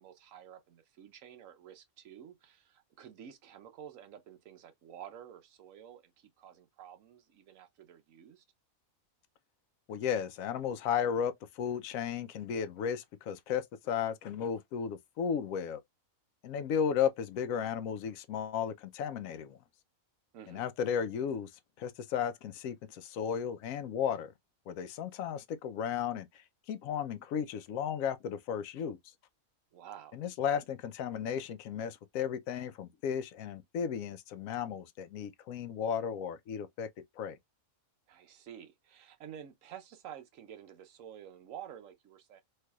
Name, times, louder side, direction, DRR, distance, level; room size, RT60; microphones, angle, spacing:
voice 1, 0.0-8.4 20.3-20.7 29.7-30.3 38.1-42.4, right 9 dB, 75° right, 1.1 m, -50 dB
voice 2, 9.9-15.8 16.4-19.6 20.5-21.5 21.8-24.3 24.7-26.3 26.7-29.0 30.1-36.9 37.2-37.4, left 8 dB, 75° left, 1.0 m, -34 dB
3.3 x 3.2 x 2.2 m
omnidirectional pair, 1.4 m